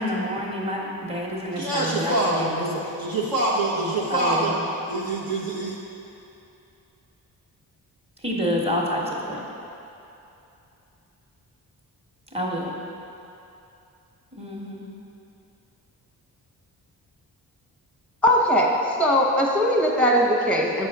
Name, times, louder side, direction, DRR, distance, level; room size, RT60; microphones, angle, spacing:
voice 1, 0.0-2.7 4.1-4.6 8.2-9.4 12.3-12.7 14.3-14.9, equal, 15° right, -3 dB, 1.3 m, -28 dB
voice 2, 1.6-4.5 4.9-5.8, right 2 dB, 60° right, -7 dB, 1.1 m, -25 dB
voice 3, 18.2-20.9, equal, 5° left, -1 dB, 1.0 m, -20 dB
6.8 x 4.4 x 3.6 m, 2.8 s
supercardioid pair, 45°, 42 cm